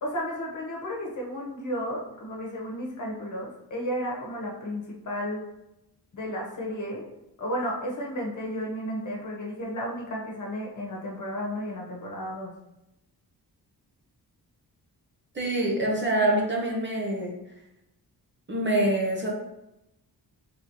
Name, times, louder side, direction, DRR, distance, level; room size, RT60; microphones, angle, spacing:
voice 1, 0.0-5.4 6.1-7.1 7.4-12.5, equal, 50° left, -2 dB, 1.1 m, -33 dB
voice 2, 15.3-17.4 18.5-19.3, right 1 dB, 30° right, -2 dB, 0.8 m, -25 dB
4.1 x 3.6 x 3.0 m, 0.89 s
wide cardioid pair, 130°, 39 cm